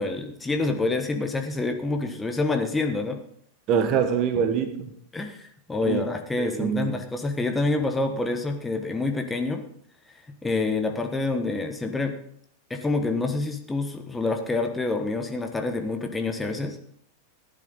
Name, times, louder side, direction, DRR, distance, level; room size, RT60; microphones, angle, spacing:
voice 1, 0.0-3.2 5.1-9.6 10.4-12.2 12.7-16.8, left 3 dB, 10° left, 5 dB, 1.3 m, -27 dB
voice 2, 3.7-4.9 5.8-6.1 6.4-7.0, right 7 dB, 35° right, 8 dB, 1.5 m, -24 dB
15.5 x 9.9 x 4.1 m, 0.64 s
figure-of-eight pair, 90°, 0 cm